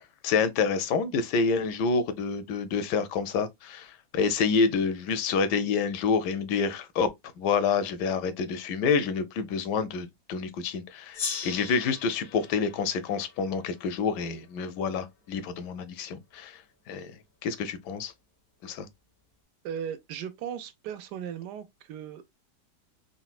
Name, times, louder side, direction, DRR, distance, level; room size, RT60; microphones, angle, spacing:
voice 1, 0.0-7.1 7.4-16.6 16.9-17.1 17.4-18.1 18.6-18.9, left 5 dB, 85° left, 1.2 m, -28 dB
Gong, 11.1-14.3, left 6 dB, 65° left, 0.6 m, -39 dB
voice 2, 19.6-22.5, right 8 dB, 90° right, 1.2 m, -37 dB
4.0 x 2.1 x 2.3 m
omnidirectional pair, 1.8 m